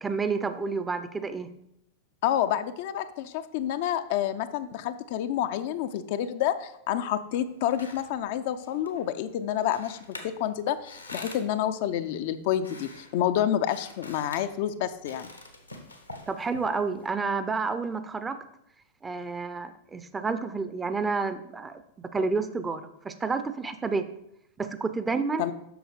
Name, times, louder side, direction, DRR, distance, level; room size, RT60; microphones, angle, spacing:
voice 1, 0.0-1.5 16.3-18.4 19.0-21.8 22.1-24.0 24.6-25.4, right 4 dB, 15° right, 11 dB, 0.6 m, -30 dB
voice 2, 2.2-15.3 25.4-25.5, left 10 dB, 50° left, 10 dB, 0.5 m, -29 dB
sound 1, 7.4-17.1, left 2 dB, 85° left, 1.1 m, -47 dB
8.0 x 6.2 x 4.9 m, 0.78 s
figure-of-eight pair, 90°, 0 cm